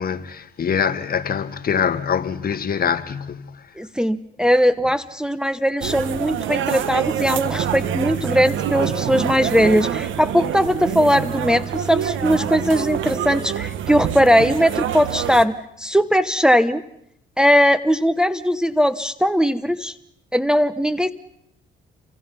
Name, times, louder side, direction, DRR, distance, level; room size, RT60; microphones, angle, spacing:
voice 1, 0.0-3.7, left 7 dB, 50° left, 1.7 m, -24 dB
voice 2, 3.8-16.8 17.4-19.9 20.3-21.1, equal, 5° right, 0.9 m, -19 dB
sound 1, 5.8-15.4, right 9 dB, 75° right, 1.6 m, -26 dB
29.0 x 25.5 x 5.8 m
cardioid pair, 90°, 20 cm